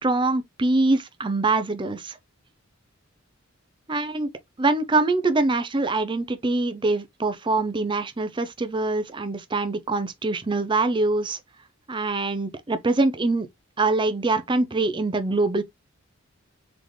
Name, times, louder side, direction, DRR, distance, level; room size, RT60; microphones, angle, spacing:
voice 1, 0.0-2.2 3.9-4.3 4.6-11.4 11.9-13.5 13.8-15.6, right 3 dB, 25° right, 0.5 m, -24 dB
3.9 x 3.5 x 3.1 m
head